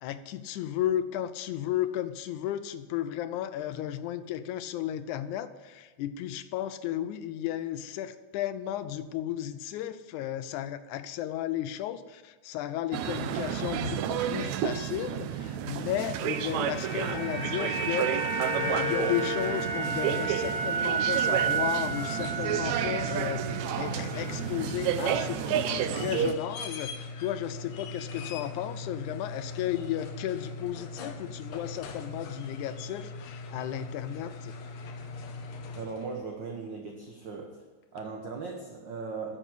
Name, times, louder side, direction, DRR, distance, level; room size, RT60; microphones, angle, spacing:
voice 1, 0.0-23.4 23.8-34.6, left 12 dB, 90° left, 12 dB, 2.1 m, -34 dB
sound 1, 12.9-26.3, right 9 dB, 80° right, 1.9 m, -31 dB
sound 2, 16.2-24.5 24.8-25.0, right 4 dB, 55° left, 5.3 m, -32 dB
sound 3, 21.8-36.2 38.0-38.1, left 3 dB, 70° left, 2.2 m, -40 dB
voice 2, 35.7-37.6 37.9-39.4, right 4 dB, 55° right, 2 dB, 1.3 m, -38 dB
11.0 x 7.3 x 8.3 m, 1.4 s
omnidirectional pair, 3.4 m